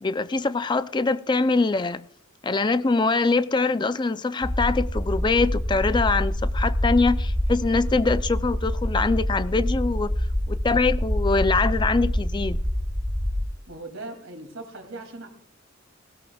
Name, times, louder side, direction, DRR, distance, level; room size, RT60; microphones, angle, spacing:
voice 1, 0.0-2.0 2.4-10.1 10.5-12.6, left 3 dB, 20° left, 0.4 m, -23 dB
sound 1, 4.4-13.4, equal, ahead, 2.7 m, -26 dB
voice 2, 13.7-15.3, right 2 dB, 70° right, 2.6 m, -39 dB
18.5 x 16.5 x 2.3 m
head